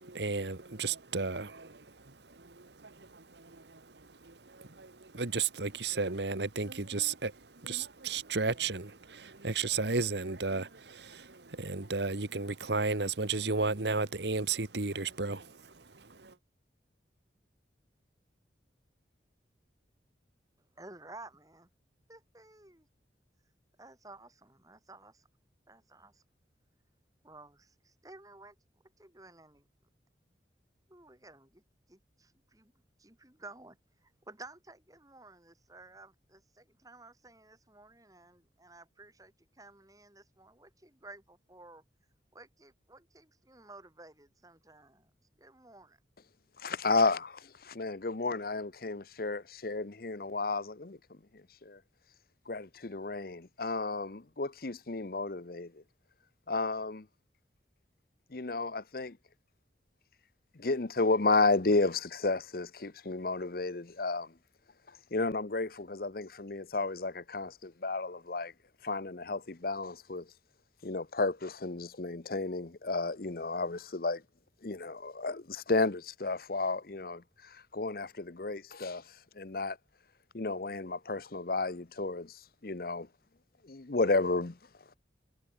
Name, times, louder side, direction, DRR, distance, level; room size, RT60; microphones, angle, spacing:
voice 1, 0.0-1.8 2.3-3.8 4.2-7.3 7.6-15.7 16.0-16.3, right 4 dB, 70° right, 1.6 m, -34 dB
voice 2, 20.8-21.7 22.1-22.9 23.8-25.3 25.7-26.2 27.2-28.5 29.0-29.7 30.9-31.6 31.9-32.7 33.0-33.8 34.0-41.8 42.3-45.1 45.4-46.0, right 2 dB, 20° right, 6.8 m, -53 dB
voice 3, 46.6-51.8 52.5-55.8 56.5-57.1 58.3-59.2 60.5-64.3 64.9-68.5 68.8-70.3 70.8-74.2 74.6-79.8 80.3-83.1 83.6-84.6, left 3 dB, 55° left, 0.9 m, -32 dB
head